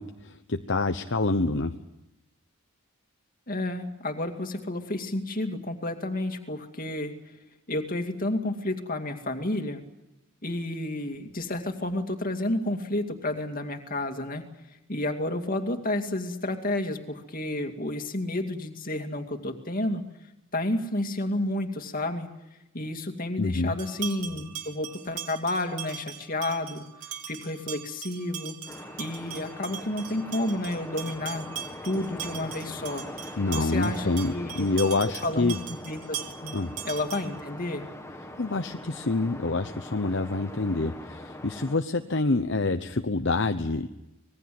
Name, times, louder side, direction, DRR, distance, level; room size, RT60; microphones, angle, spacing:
voice 1, 0.0-1.8 23.4-23.8 33.4-35.6 36.5-36.7 38.4-43.9, left 3 dB, 55° left, 8 dB, 0.9 m, -27 dB
voice 2, 3.5-7.1 7.7-9.8 10.4-14.4 14.9-20.0 20.5-22.3 22.7-28.6 29.0-31.5 31.8-33.1 33.6-34.7 35.0-35.5 35.9-36.6 36.8-37.9, left 1 dB, 40° left, 6 dB, 2.4 m, -31 dB
sound 1, 23.8-37.5, right 10 dB, 85° right, 3.0 m, -40 dB
sound 2, 28.7-41.8, left 1 dB, 15° left, 1.7 m, -42 dB
26.0 x 20.5 x 7.8 m, 0.94 s
head